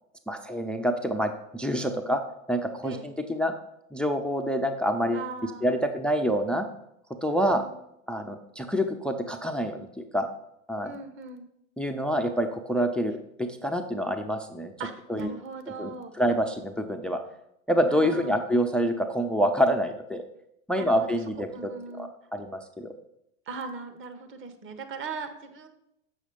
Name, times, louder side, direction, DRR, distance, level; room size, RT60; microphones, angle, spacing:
voice 1, 0.3-2.2 2.5-3.5 3.9-5.3 5.6-6.7 7.2-7.6 8.1-10.3 10.7-10.9 11.8-14.7 15.1-15.3 15.8-17.2 17.7-20.2 20.7-21.7 22.0-22.9, equal, 5° left, 7 dB, 0.5 m, -27 dB
voice 2, 5.1-5.7 7.3-7.8 10.8-11.5 14.8-16.1 17.9-18.4 20.7-21.2 21.5-22.1 23.5-25.7, right 4 dB, 30° right, 8 dB, 1.3 m, -39 dB
6.7 x 6.4 x 5.1 m, 0.79 s
hypercardioid pair, 95°, 40 cm